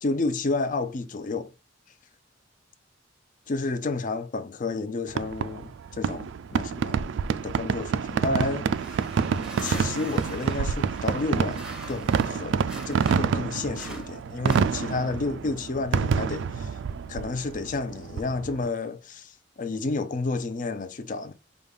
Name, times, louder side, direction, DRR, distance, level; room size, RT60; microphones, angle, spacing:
voice 1, 0.0-1.5 3.5-6.3 6.5-7.0 7.4-8.7 9.3-16.7 17.1-21.3, left 3 dB, 45° left, 0.5 m, -31 dB
Fireworks, 5.1-18.7, right 6 dB, 70° right, 0.3 m, -28 dB
sound 1, 8.7-13.4 13.7-15.2, equal, 5° right, 0.8 m, -43 dB
5.2 x 2.4 x 3.4 m
head